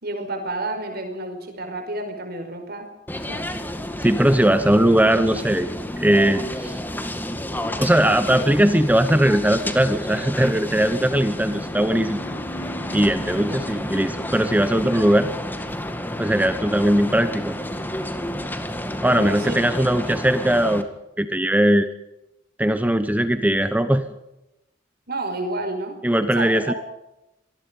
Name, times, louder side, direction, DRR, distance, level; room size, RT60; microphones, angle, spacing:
voice 1, 0.0-2.9 3.3-3.4 13.5-13.6 19.0-19.6 25.1-26.0 26.4-26.8, right 2 dB, 55° right, 6 dB, 5.3 m, -30 dB
sound 1, 3.1-20.8, left 1 dB, 10° left, 2.0 m, -30 dB
voice 2, 4.0-5.7 6.0-6.8 7.8-12.2 12.9-15.3 16.2-17.6 19.0-20.9 21.2-21.9 22.6-24.1 26.0-26.7, right 1 dB, 10° right, 10 dB, 1.0 m, -19 dB
sound 2, 12.2-20.0, equal, 75° left, 2.3 m, -43 dB
25.5 x 19.5 x 5.4 m, 0.90 s
head